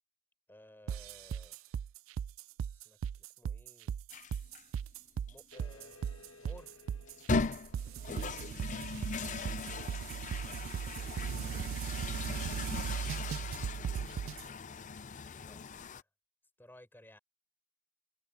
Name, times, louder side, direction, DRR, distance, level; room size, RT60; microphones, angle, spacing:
voice 1, 0.5-1.6 2.8-4.0 5.3-6.8 7.4-8.1 15.4-15.6 16.6-17.2, left 1 dB, 10° left, 5.0 m, -58 dB
sound 1, 0.9-14.4, right 8 dB, 70° right, 0.3 m, -38 dB
sound 2, 4.1-4.6 5.3-5.4 7.1-16.0, left 4 dB, 40° left, 0.5 m, -39 dB
sound 3, 5.5-10.6, left 3 dB, 80° left, 1.9 m, -59 dB
voice 2, 8.5-8.6, left 2 dB, 60° left, 2.8 m, -66 dB
head